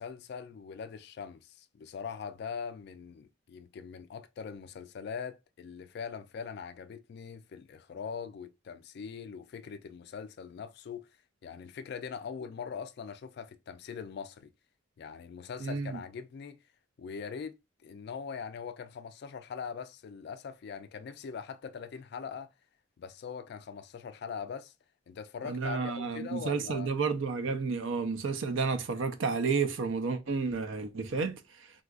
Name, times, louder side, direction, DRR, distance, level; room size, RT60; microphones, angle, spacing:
voice 1, 0.0-11.1 11.4-14.5 15.0-16.6 17.0-22.5 23.0-24.7 25.1-26.9, left 6 dB, 55° left, 0.3 m, -42 dB
voice 2, 15.6-16.0 25.4-31.4, right 4 dB, 70° right, 0.5 m, -31 dB
3.7 x 2.4 x 2.4 m
head